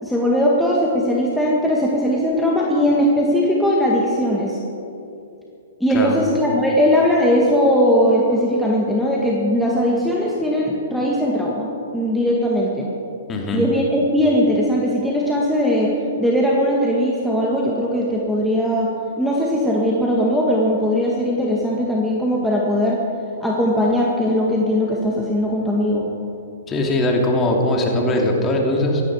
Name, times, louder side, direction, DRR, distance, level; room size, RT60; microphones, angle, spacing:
voice 1, 0.0-4.6 5.8-12.9 13.5-15.9 16.2-18.9 19.2-23.0 23.4-26.1, equal, ahead, -4 dB, 1.8 m, -19 dB
voice 2, 13.3-13.6 26.7-29.0, left 1 dB, 20° left, 0 dB, 2.9 m, -20 dB
17.0 x 14.0 x 4.9 m, 2.7 s
hypercardioid pair, 125°, 0 cm